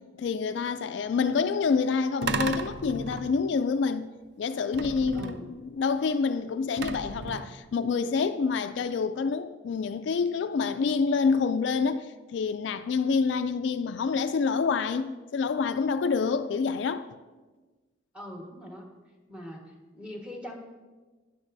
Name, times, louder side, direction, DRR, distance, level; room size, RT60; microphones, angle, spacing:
voice 1, 0.2-4.1 4.4-17.1, left 5 dB, 65° left, 0.3 m, -27 dB
sound 1, 2.2-3.6 4.7-5.6 6.8-7.7, right 4 dB, 60° right, 0.5 m, -34 dB
voice 2, 5.1-5.5 18.1-18.9 19.3-20.6, left 1 dB, 5° right, 1.4 m, -42 dB
12.5 x 10.0 x 2.6 m
head